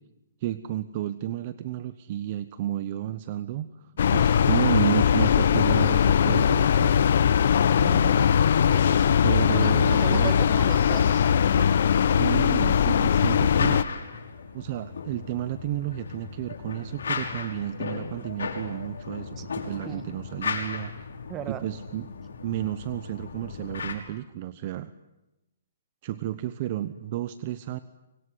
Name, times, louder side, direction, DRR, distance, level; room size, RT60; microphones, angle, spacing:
voice 1, 0.4-7.1 9.2-10.3 12.2-13.8 14.5-20.9 21.5-22.1 22.4-24.9 26.0-27.8, right 12 dB, 30° right, 13 dB, 0.9 m, -31 dB
sound 1, 4.0-13.8, left 8 dB, 55° left, 0.9 m, -20 dB
voice 2, 7.8-8.4 8.7-9.2 9.5-11.7 19.4-19.5 19.8-20.0 21.3-21.6, right 10 dB, 15° right, 11 dB, 1.6 m, -37 dB
sound 2, 10.9-23.9, left 5 dB, 85° left, 5.9 m, -37 dB
25.0 x 24.0 x 9.8 m, 0.96 s
hypercardioid pair, 170°, 0 cm